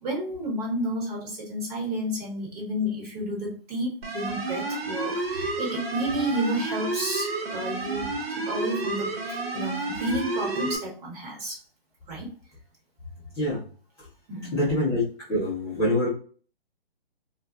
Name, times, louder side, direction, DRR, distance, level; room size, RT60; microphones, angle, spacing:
voice 1, 0.0-11.6 12.1-12.3 14.3-14.7, equal, 40° right, -2 dB, 1.3 m, -31 dB
sound 1, 4.0-10.8, right 3 dB, 80° right, 0.9 m, -31 dB
voice 2, 14.5-16.1, left 1 dB, 10° left, -11 dB, 0.5 m, -25 dB
2.3 x 2.2 x 2.6 m, 0.42 s
hypercardioid pair, 140°, 30 cm